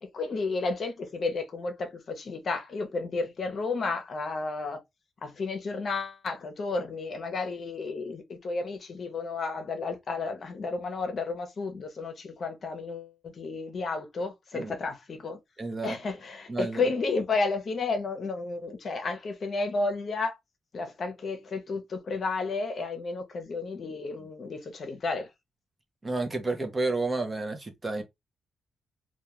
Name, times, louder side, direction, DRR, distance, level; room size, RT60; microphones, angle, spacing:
voice 1, 0.0-4.8 5.2-15.4 15.8-20.4 20.7-25.3, left 3 dB, 50° left, 0.6 m, -32 dB
voice 2, 15.6-16.0 16.5-16.8 26.0-28.0, right 3 dB, 25° right, 0.6 m, -30 dB
2.3 x 2.2 x 2.9 m
cardioid pair, 105°, 0 cm